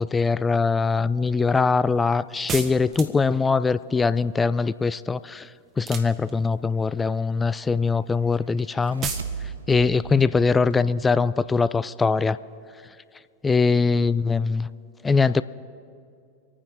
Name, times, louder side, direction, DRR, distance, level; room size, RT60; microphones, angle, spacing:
voice 1, 0.0-5.5 5.8-9.1 9.7-12.4 13.4-14.7 15.0-15.4, left 4 dB, 15° left, 16 dB, 0.3 m, -22 dB
sound 1, 2.5-3.4 5.8-6.6 9.0-9.3, right 5 dB, 30° right, 1.2 m, -32 dB
sound 2, 8.6-11.9, right 6 dB, 70° right, 0.4 m, -38 dB
27.0 x 9.4 x 4.0 m, 2.4 s
figure-of-eight pair, 90°, 0 cm